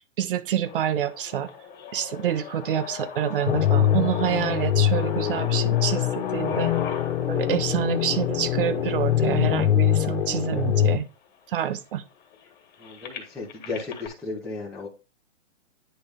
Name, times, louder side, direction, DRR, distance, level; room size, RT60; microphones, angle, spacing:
voice 1, 0.2-1.5 1.9-6.7 7.3-11.1 11.5-12.0, right 10 dB, 45° right, 0.8 m, -27 dB
sound 1, 0.6-10.6 11.3-11.4 11.6-14.1, left 7 dB, 25° left, 1.9 m, -38 dB
sound 2, 3.5-11.0, left 11 dB, 65° left, 1.4 m, -23 dB
voice 2, 12.8-14.9, left 3 dB, ahead, 0.8 m, -34 dB
10.0 x 3.4 x 3.5 m
hypercardioid pair, 155°, 37 cm